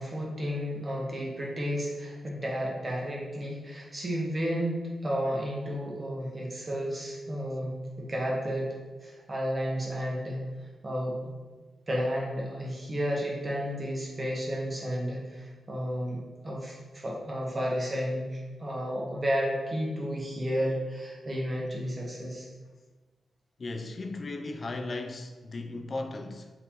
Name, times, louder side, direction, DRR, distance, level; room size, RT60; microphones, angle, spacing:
voice 1, 0.0-8.7 9.0-10.4 10.8-11.2 11.9-22.5, equal, 25° right, 1.0 m, -32 dB
voice 2, 23.6-26.5, left 2 dB, 40° left, 0.3 m, -36 dB
3.8 x 2.9 x 3.5 m
wide cardioid pair, 115°, 0 cm